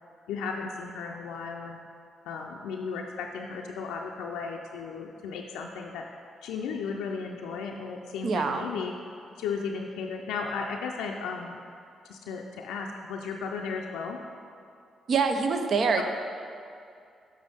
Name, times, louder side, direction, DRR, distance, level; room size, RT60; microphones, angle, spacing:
voice 1, 0.3-1.8 2.3-6.1 6.4-8.9 9.4-11.6 12.1-14.2 16.0-16.1, left 5 dB, 80° left, 1 dB, 0.4 m, -35 dB
voice 2, 8.2-8.7 15.1-16.0, right 5 dB, 60° right, 6 dB, 0.5 m, -25 dB
7.4 x 5.7 x 3.5 m, 2.4 s
hypercardioid pair, 50°, 0 cm